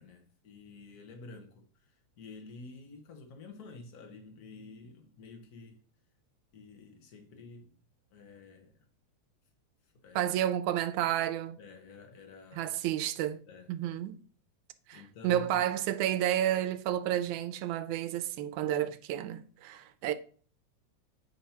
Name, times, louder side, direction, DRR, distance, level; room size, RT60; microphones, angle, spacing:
voice 1, 0.0-5.8 6.5-7.7 8.1-8.8 10.0-10.3 11.6-12.7 13.5-14.0 14.9-15.6, left 3 dB, 80° left, 0.8 m, -50 dB
voice 2, 10.2-11.6 12.5-13.4 13.7-14.2 14.9-20.1, right 11 dB, 85° right, 2.0 m, -31 dB
8.5 x 2.9 x 5.6 m
omnidirectional pair, 3.4 m